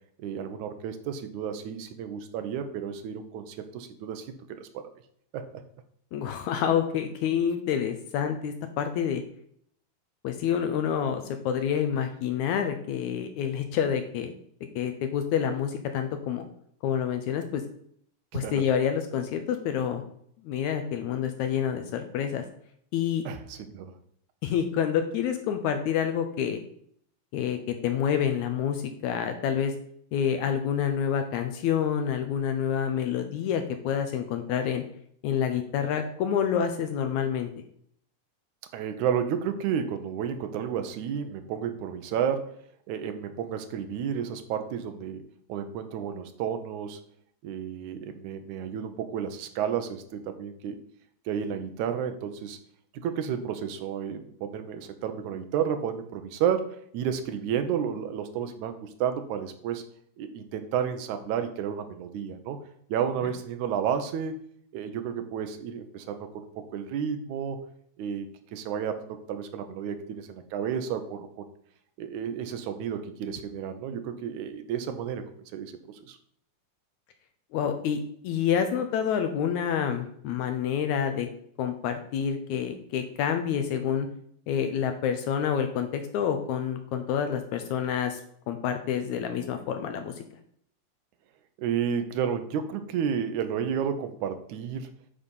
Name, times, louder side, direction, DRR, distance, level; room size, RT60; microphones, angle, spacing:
voice 1, 0.2-4.7 5.3-5.4 18.3-18.5 23.3-23.9 38.7-42.5 42.9-45.2 45.5-47.0 47.4-50.8 51.3-52.6 52.9-56.7 56.9-59.8 60.2-62.6 62.9-64.4 64.7-66.5 66.7-67.6 68.0-71.5 72.0-75.2 75.5-76.2 91.6-94.9, right 8 dB, 70° right, 7 dB, 2.1 m, -31 dB
voice 2, 6.1-9.2 10.2-14.3 14.8-16.5 16.8-17.6 18.3-20.0 20.4-22.5 22.9-23.2 24.4-26.6 27.3-29.7 30.1-34.8 35.2-37.5 77.5-81.3 81.6-84.1 84.5-88.2 88.5-90.2, left 8 dB, 75° left, 7 dB, 1.8 m, -28 dB
9.9 x 4.1 x 5.4 m, 0.66 s
omnidirectional pair, 3.9 m